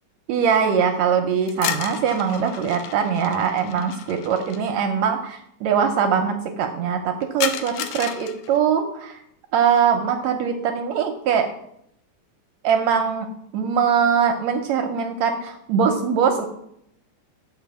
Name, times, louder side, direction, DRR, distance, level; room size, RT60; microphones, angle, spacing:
voice 1, 0.3-9.2 9.5-11.5 12.6-13.3 13.5-16.4, right 7 dB, 75° right, 5 dB, 1.7 m, -22 dB
sound 1, 1.5-4.6 7.4-8.6, left 9 dB, 75° left, 2.0 m, -31 dB
7.6 x 4.5 x 7.0 m, 0.74 s
omnidirectional pair, 3.7 m